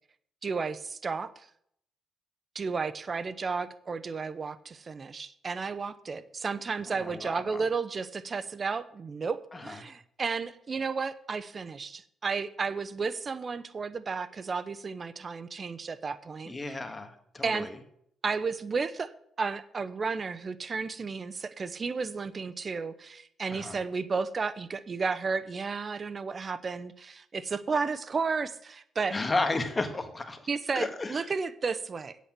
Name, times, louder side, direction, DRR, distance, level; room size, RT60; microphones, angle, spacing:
voice 1, 0.4-1.5 2.5-16.8 17.4-17.7 18.2-19.1 19.4-29.2 30.5-32.2, right 4 dB, 35° right, 14 dB, 0.8 m, -33 dB
voice 2, 6.9-7.6 9.5-9.8 16.5-17.8 23.5-23.8 29.1-30.4 30.7-31.3, left 2 dB, 25° left, 7 dB, 1.7 m, -33 dB
8.3 x 8.2 x 7.5 m, 0.70 s
cardioid pair, 90°, 0 cm